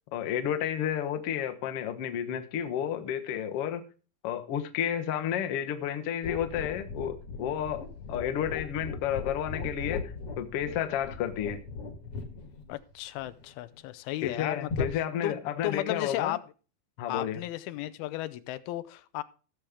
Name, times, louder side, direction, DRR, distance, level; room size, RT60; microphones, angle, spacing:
voice 1, 0.1-3.8 4.2-11.6 14.2-16.4 17.0-17.4, left 9 dB, 70° left, 1.4 m, -31 dB
sound 1, 6.2-13.8 14.7-14.9, left 4 dB, 50° left, 1.9 m, -38 dB
voice 2, 12.7-14.9 15.2-15.4 15.6-16.4 17.1-19.2, left 15 dB, 90° left, 2.6 m, -34 dB
16.0 x 7.1 x 3.5 m
omnidirectional pair, 4.3 m